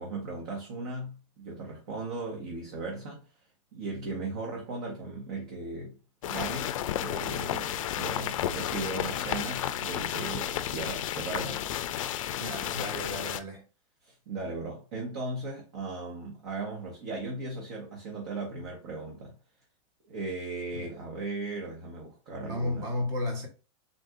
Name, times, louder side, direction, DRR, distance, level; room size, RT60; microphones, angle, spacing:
voice 1, 0.0-3.2 3.7-6.0 6.2-11.6 14.0-19.3 20.0-22.9, right 3 dB, 45° right, 1.1 m, -37 dB
sound 1, 6.2-13.4, left 11 dB, 85° left, 0.4 m, -32 dB
voice 2, 12.4-13.6 20.7-20.9 22.4-23.5, left 1 dB, 20° right, 1.0 m, -33 dB
4.0 x 2.6 x 3.6 m
supercardioid pair, 175°, 17 cm